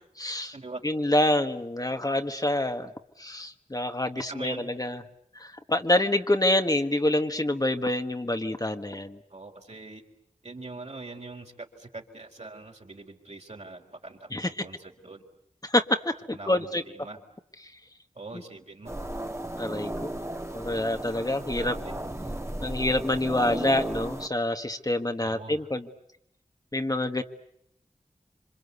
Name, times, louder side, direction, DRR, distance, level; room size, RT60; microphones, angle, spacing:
voice 1, 0.2-0.6 0.8-2.9 3.2-5.0 5.3-9.2 14.3-14.6 15.6-16.8 19.6-20.1 20.5-21.8 22.6-25.9 26.7-27.2, left 1 dB, 30° left, 6 dB, 1.5 m, -27 dB
voice 2, 4.2-4.7 9.3-10.0 10.4-15.2 16.3-17.2 18.1-19.0 21.5-22.0 25.2-25.7, right 3 dB, 55° right, 1 dB, 4.0 m, -42 dB
sound 1, 18.9-24.3, right 1 dB, 20° right, 1.7 m, -35 dB
27.5 x 25.0 x 8.3 m, 0.73 s
wide cardioid pair, 50°, 13 cm